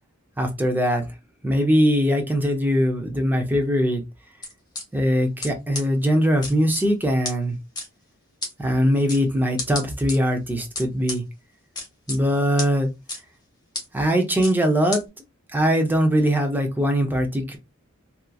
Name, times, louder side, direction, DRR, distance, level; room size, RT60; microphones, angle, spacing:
voice 1, 0.4-1.1 1.4-4.0 4.9-7.5 8.6-11.2 12.1-12.9 13.9-15.0 15.5-17.6, equal, 10° right, 0.6 m, -21 dB
sound 1, 4.4-4.8 5.4-5.5 5.7-5.8 6.4-6.8 7.2-7.3 7.8-7.9 8.4-8.5 9.1-9.2 9.6-10.2 10.8-11.2 11.8-12.2 12.6-12.7 13.1-13.2 13.7-13.8 14.4-14.5 14.9-15.0, left 2 dB, 20° left, 0.9 m, -30 dB
2.9 x 2.4 x 2.3 m
head